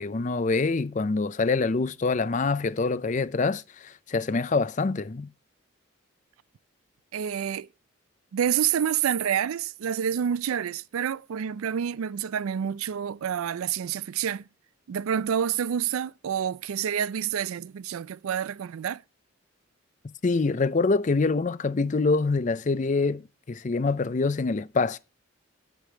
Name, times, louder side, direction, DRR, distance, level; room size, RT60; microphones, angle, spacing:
voice 1, 0.0-5.3 20.2-23.2 23.5-25.0, left 3 dB, 35° left, 0.4 m, -25 dB
voice 2, 7.1-7.7 8.3-14.5 14.9-19.0, right 8 dB, 90° right, 0.4 m, -28 dB
8.4 x 8.1 x 4.5 m
head